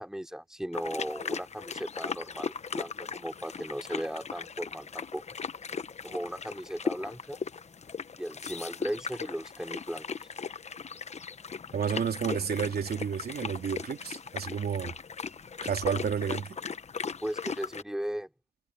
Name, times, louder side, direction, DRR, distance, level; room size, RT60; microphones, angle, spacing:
voice 1, 0.0-5.2 6.0-7.4 8.2-10.3 17.2-18.3, equal, 5° right, 3.5 m, -37 dB
sound 1, 0.7-17.8, left 5 dB, 35° left, 1.1 m, -38 dB
voice 2, 11.7-14.9 15.6-16.6, right 7 dB, 50° right, 3.1 m, -31 dB
cardioid pair, 90°, 20 cm